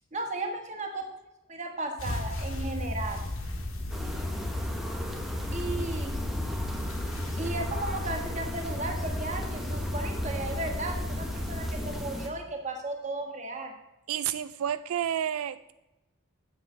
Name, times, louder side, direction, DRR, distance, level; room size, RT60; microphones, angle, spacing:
voice 1, 0.1-1.0 1.5-3.2 5.5-6.1 7.4-13.7, right 2 dB, 35° right, 3 dB, 1.5 m, -35 dB
sound 1, 2.0-12.1, left 1 dB, 75° left, 1.7 m, -34 dB
sound 2, 3.9-12.3, equal, ahead, 1.1 m, -39 dB
voice 2, 14.1-15.7, right 10 dB, 85° right, 14 dB, 0.3 m, -30 dB
8.0 x 7.7 x 6.7 m, 1.0 s
head